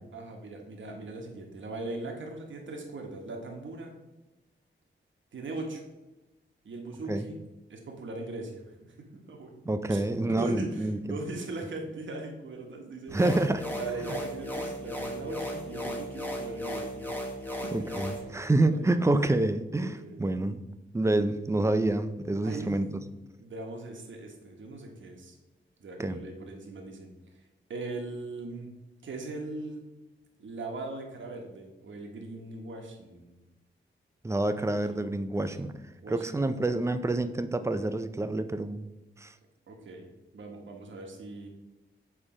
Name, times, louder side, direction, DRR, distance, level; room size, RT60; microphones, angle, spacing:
voice 1, 0.1-3.9 5.3-5.8 6.6-7.4 7.7-9.5 9.9-13.2 13.8-17.1 17.5-17.7 18.7-19.1 19.8-20.3 22.4-23.0 23.4-25.4 25.8-27.1 27.7-28.7 29.0-29.9 30.4-33.4 35.4-35.5 36.0-36.3 39.7-40.1 40.3-41.5, right 2 dB, 70° right, 1 dB, 1.2 m, -40 dB
voice 2, 9.7-11.0 13.1-13.7 17.7-20.6 20.9-22.9 26.0-26.2 34.2-35.7 36.1-38.8 39.2-39.3, right 2 dB, 15° right, 10 dB, 0.4 m, -27 dB
sound 1, 13.1-18.2, equal, 10° left, 1.1 m, -36 dB
7.5 x 3.3 x 4.9 m, 1.1 s
wide cardioid pair, 90°, 20 cm